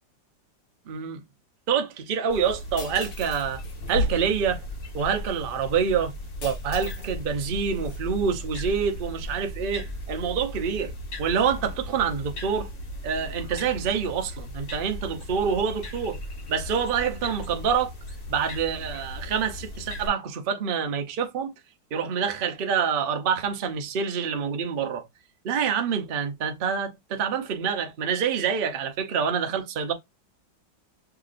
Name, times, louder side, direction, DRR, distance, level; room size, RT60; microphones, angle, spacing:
voice 1, 0.9-1.2 1.7-3.6 3.9-4.6 4.9-6.1 6.4-10.9 11.2-12.7 13.0-16.2 16.5-17.9 18.3-21.5 21.9-25.1 25.4-29.9, right 6 dB, 65° right, 0.5 m, -26 dB
sound 1, 2.3-20.1, equal, 80° left, 2.2 m, -36 dB
sound 2, 2.8-4.0 6.4-7.1 7.4-8.0, left 5 dB, 60° left, 1.4 m, -43 dB
5.8 x 2.8 x 2.5 m
omnidirectional pair, 2.0 m